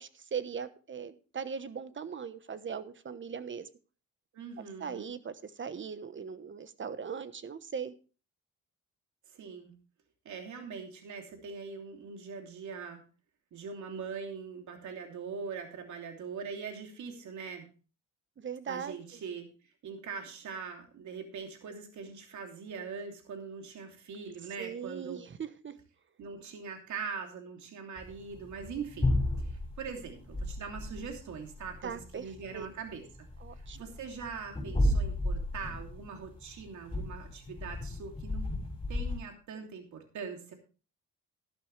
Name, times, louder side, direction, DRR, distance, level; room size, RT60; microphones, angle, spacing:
voice 1, 0.0-3.7 4.8-7.9 18.4-19.0 24.6-25.7 31.8-32.2 32.5-32.7 33.4-33.8, right 6 dB, 40° right, 13 dB, 1.1 m, -39 dB
voice 2, 4.3-5.1 9.3-9.7 10.2-13.0 13.5-17.7 18.7-19.5 19.8-25.2 26.2-33.1 33.5-38.5 38.9-40.5, right 5 dB, 70° right, 3 dB, 3.0 m, -42 dB
sound 1, 28.0-39.2, left 1 dB, 20° left, 6.3 m, -33 dB
12.0 x 12.0 x 3.3 m, 0.35 s
cardioid pair, 90°, 30 cm